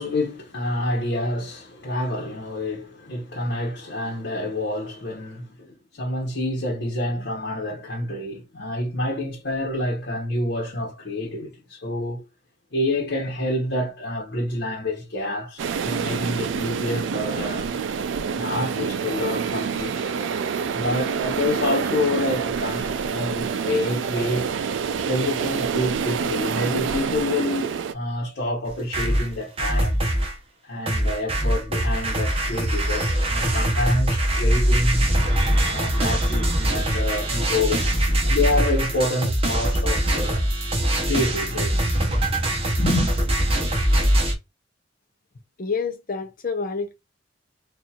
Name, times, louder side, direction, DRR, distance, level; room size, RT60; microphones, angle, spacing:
voice 1, 0.0-12.2 12.7-17.7 18.3-24.6 25.0-30.0 30.7-35.0 35.6-40.5 41.0-41.9 42.8-43.1, left 1 dB, 70° left, 1.1 m, -28 dB
sound 1, 15.6-27.9, right 6 dB, 90° right, 0.4 m, -27 dB
sound 2, 28.7-30.3 30.9-44.3, right 1 dB, 30° right, 1.0 m, -22 dB
voice 2, 45.6-46.9, left 5 dB, 50° left, 0.7 m, -28 dB
4.3 x 2.6 x 2.3 m
head